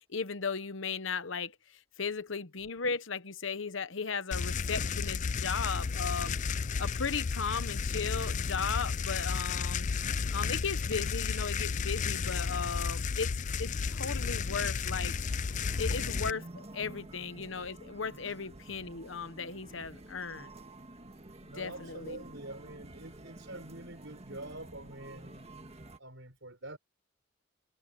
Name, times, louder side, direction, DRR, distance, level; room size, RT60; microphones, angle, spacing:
voice 1, 0.1-6.5 6.8-9.9 10.3-13.3 13.6-15.1 15.8-20.5 21.6-22.2, left 5 dB, 75° left, 1.1 m, -36 dB
sound 1, 4.3-16.3, left 5 dB, 40° left, 0.4 m, -33 dB
sound 2, 14.9-26.0, right 1 dB, 35° right, 1.8 m, -49 dB
voice 2, 21.1-25.5 26.0-26.8, right 1 dB, 70° right, 6.3 m, -46 dB
head